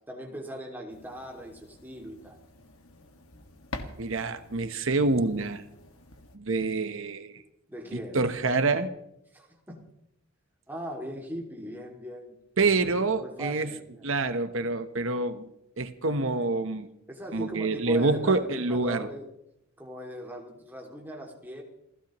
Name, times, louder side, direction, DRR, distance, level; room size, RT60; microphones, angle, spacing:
voice 1, 0.1-2.4 7.7-8.2 9.3-9.8 10.7-12.3 13.2-14.0 17.1-19.3 19.8-21.6, equal, 10° right, 0 dB, 2.5 m, -39 dB
sound 1, 0.9-6.4, left 2 dB, 70° left, 1.9 m, -46 dB
voice 2, 4.0-5.6 6.3-7.4 8.1-8.9 12.6-13.7 14.0-15.5 15.8-16.9 17.3-19.1, right 3 dB, 60° right, 9 dB, 1.0 m, -26 dB
28.5 x 16.0 x 3.1 m, 0.79 s
head